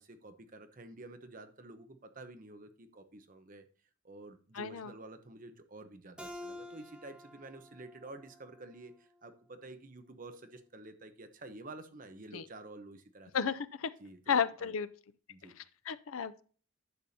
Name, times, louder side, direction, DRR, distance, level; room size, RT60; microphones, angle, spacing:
voice 1, 0.0-3.6 4.0-13.3 14.0-14.7 15.3-15.5, right 2 dB, 40° right, 8 dB, 0.9 m, -50 dB
voice 2, 4.5-4.9 12.3-12.5 13.3-13.9 14.3-14.9 15.4-16.4, left 6 dB, 75° left, 14 dB, 0.5 m, -33 dB
Keyboard (musical), 6.2-9.4, left 1 dB, 5° right, 1.1 m, -50 dB
11.0 x 6.9 x 2.8 m, 0.41 s
head